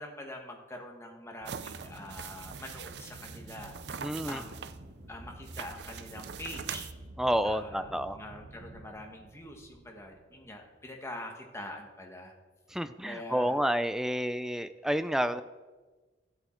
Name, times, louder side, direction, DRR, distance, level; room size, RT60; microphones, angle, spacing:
voice 1, 0.0-4.6 5.1-6.9 7.4-12.4 13.0-13.6, left 1 dB, 15° left, 2 dB, 1.4 m, -44 dB
Aircraft, 1.4-10.9, right 1 dB, 80° right, 1.3 m, -50 dB
sound 1, 1.5-4.8 5.5-6.9, right 7 dB, 65° right, 0.5 m, -43 dB
voice 2, 4.0-4.4 7.2-8.2 12.7-15.4, equal, 5° right, 12 dB, 0.4 m, -29 dB
14.0 x 8.0 x 4.5 m, 1.3 s
head